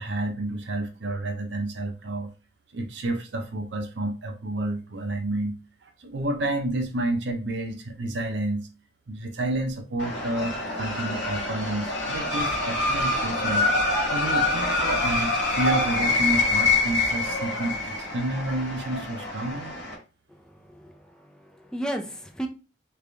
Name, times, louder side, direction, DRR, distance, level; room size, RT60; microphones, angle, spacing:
voice 1, 0.0-2.3 2.7-5.6 5.8-8.7 9.1-13.7 14.1-19.7, right 1 dB, 75° right, 0.6 m, -30 dB
sound 1, 10.0-19.9, left 2 dB, 80° left, 1.5 m, -26 dB
voice 2, 20.3-22.5, right 1 dB, 5° left, 0.4 m, -35 dB
3.4 x 2.5 x 3.3 m
head